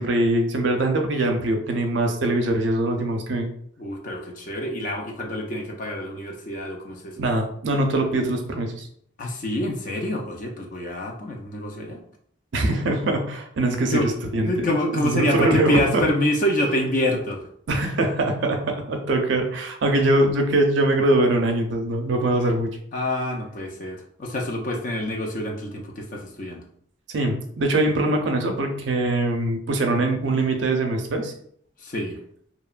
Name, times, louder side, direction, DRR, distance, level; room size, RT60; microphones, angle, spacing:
voice 1, 0.0-3.5 7.2-8.9 12.5-14.5 14.9-16.0 17.7-22.7 27.1-31.3, right 2 dB, 60° right, 4 dB, 0.4 m, -22 dB
voice 2, 3.8-7.2 9.2-12.0 13.9-14.1 14.5-17.5 22.9-26.6 31.8-32.2, left 1 dB, 40° left, 2 dB, 0.4 m, -26 dB
2.8 x 2.1 x 2.4 m, 0.63 s
head